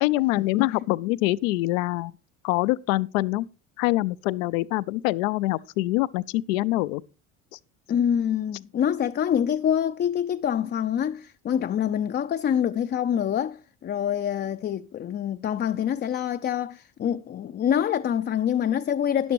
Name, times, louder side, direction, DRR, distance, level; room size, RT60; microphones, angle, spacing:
voice 1, 0.0-2.1 2.4-3.5 3.8-7.0, left 18 dB, 80° left, 0.6 m, -25 dB
voice 2, 7.9-19.3, left 9 dB, 25° left, 0.4 m, -26 dB
12.5 x 10.5 x 3.1 m
hypercardioid pair, 70°, 40 cm